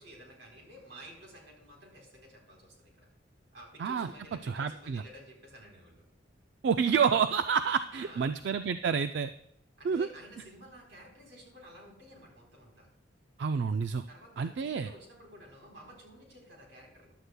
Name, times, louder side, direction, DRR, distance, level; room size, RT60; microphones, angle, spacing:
voice 1, 0.0-3.1 3.5-6.0 7.9-8.4 9.8-12.9 14.1-17.1, equal, 85° right, -1 dB, 3.6 m, -52 dB
voice 2, 3.8-4.1 4.4-5.0 6.6-9.3 9.8-10.1 13.4-14.0 14.4-14.9, right 6 dB, 65° right, 10 dB, 0.3 m, -28 dB
14.5 x 11.0 x 2.2 m, 0.76 s
head